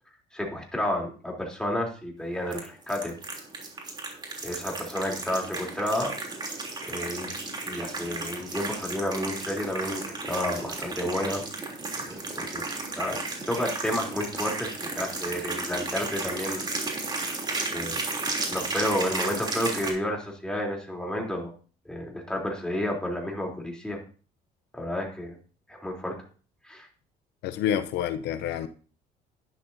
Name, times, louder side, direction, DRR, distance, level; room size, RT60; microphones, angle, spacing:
voice 1, 0.3-3.1 4.4-6.1 6.9-7.4 7.6-11.4 12.0-12.6 13.0-13.2 13.5-16.7 17.7-18.0 18.5-21.5 21.9-24.0 24.7-25.4 25.7-26.1 26.6-26.9, left 1 dB, 5° left, -1 dB, 3.5 m, -31 dB
sound 1, 2.5-19.9, right 3 dB, 25° right, 3.3 m, -34 dB
voice 2, 27.4-28.7, left 10 dB, 85° left, 10 dB, 0.7 m, -28 dB
11.5 x 10.5 x 2.8 m, 0.38 s
cardioid pair, 110°, 17 cm